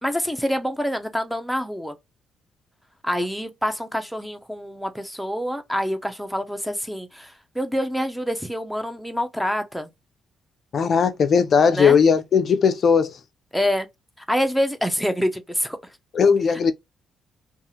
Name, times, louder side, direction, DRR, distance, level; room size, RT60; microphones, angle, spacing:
voice 1, 0.0-2.0 3.0-9.9 11.7-12.0 13.5-13.9 14.3-15.8, equal, ahead, 0.6 m, -26 dB
voice 2, 10.7-13.2 16.1-16.7, left 6 dB, 55° left, 0.3 m, -18 dB
2.7 x 2.4 x 2.7 m
cardioid pair, 90°, 0 cm